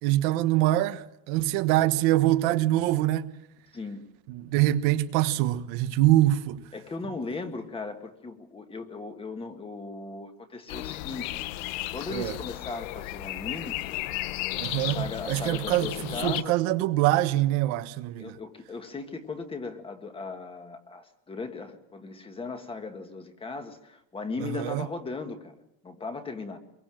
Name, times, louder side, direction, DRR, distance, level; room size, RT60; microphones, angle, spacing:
voice 1, 0.0-3.3 4.3-6.6 12.1-12.3 14.6-15.9 16.2-18.4 24.5-24.9, right 15 dB, 70° right, 1.3 m, -24 dB
voice 2, 6.7-11.6 11.9-13.8 14.8-16.5 18.2-26.6, left 3 dB, 15° left, 1.7 m, -37 dB
sound 1, 10.7-16.4, left 17 dB, 90° left, 1.0 m, -34 dB
24.0 x 23.0 x 7.7 m
cardioid pair, 175°, 39 cm